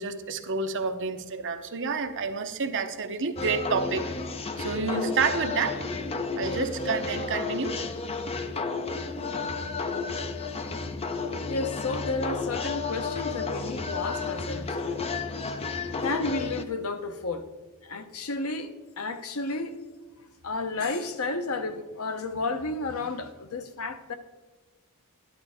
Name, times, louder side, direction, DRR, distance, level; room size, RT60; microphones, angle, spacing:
voice 1, 0.0-4.0 4.6-5.8 6.4-7.8, right 4 dB, 55° right, 0.8 m, -29 dB
sound 1, 3.4-16.6, left 4 dB, 25° left, 0.6 m, -32 dB
voice 2, 11.5-15.0 16.0-17.5 17.8-19.8 20.4-24.2, left 3 dB, 70° left, 0.8 m, -32 dB
12.5 x 11.0 x 3.6 m
head